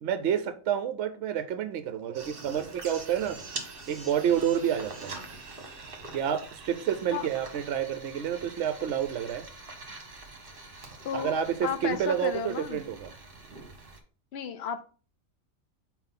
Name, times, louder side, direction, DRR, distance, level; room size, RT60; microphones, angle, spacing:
voice 1, 0.0-3.4 3.9-5.2 6.1-9.4 11.1-11.6 11.8-13.1, right 9 dB, 65° right, 0.8 m, -29 dB
sound 1, 2.1-14.0, right 3 dB, 45° right, 1.3 m, -44 dB
voice 2, 11.0-12.8 14.3-14.8, left 8 dB, 60° left, 0.8 m, -33 dB
4.4 x 3.9 x 5.6 m
omnidirectional pair, 1.4 m